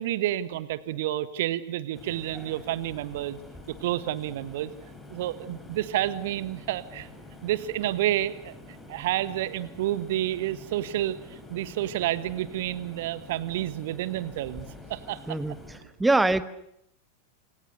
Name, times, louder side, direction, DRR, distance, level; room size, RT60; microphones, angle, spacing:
voice 1, 0.0-3.4 3.8-4.7 5.1-7.1 7.4-8.6 8.9-15.2, right 13 dB, 55° right, 15 dB, 1.5 m, -29 dB
sound 1, 1.9-15.8, left 2 dB, 10° left, 5.0 m, -47 dB
voice 2, 15.3-16.4, right 2 dB, 10° right, 15 dB, 1.2 m, -24 dB
28.5 x 25.5 x 6.8 m, 0.77 s
figure-of-eight pair, 90°, 0 cm